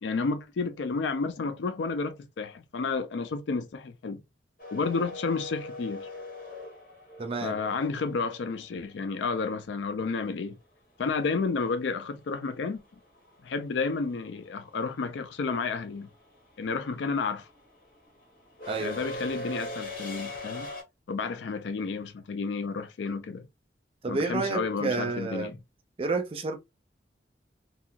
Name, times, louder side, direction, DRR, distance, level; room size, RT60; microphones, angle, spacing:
voice 1, 0.0-4.2 4.7-6.1 7.4-10.6 11.0-12.8 13.4-16.1 16.6-17.5 18.8-20.7 21.1-23.5 24.1-25.6, left 4 dB, 85° left, 0.4 m, -31 dB
sound 1, 4.6-8.7 11.1-11.2 12.5-12.8 13.0-20.8, left 1 dB, 50° left, 1.2 m, -40 dB
voice 2, 7.2-7.6 18.7-19.0 24.0-25.5 26.0-26.6, right 3 dB, 30° right, 0.4 m, -30 dB
2.8 x 2.3 x 2.4 m
head